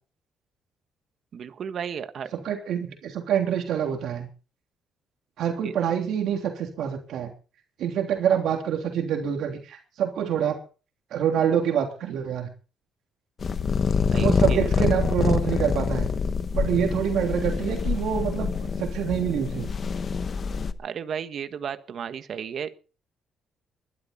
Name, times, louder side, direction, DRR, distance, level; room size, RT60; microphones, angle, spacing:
voice 1, 1.3-2.3 5.6-5.7 14.1-14.8 20.8-22.7, right 7 dB, 45° right, 9 dB, 1.4 m, -34 dB
voice 2, 2.3-4.3 5.4-7.3 7.8-10.6 11.1-12.5 14.2-16.1 16.5-19.7, right 8 dB, 70° right, 2 dB, 3.3 m, -26 dB
sound 1, 13.4-20.7, left 5 dB, 35° left, 1.0 m, -26 dB
20.5 x 12.5 x 4.2 m, 0.36 s
cardioid pair, 160°, 0 cm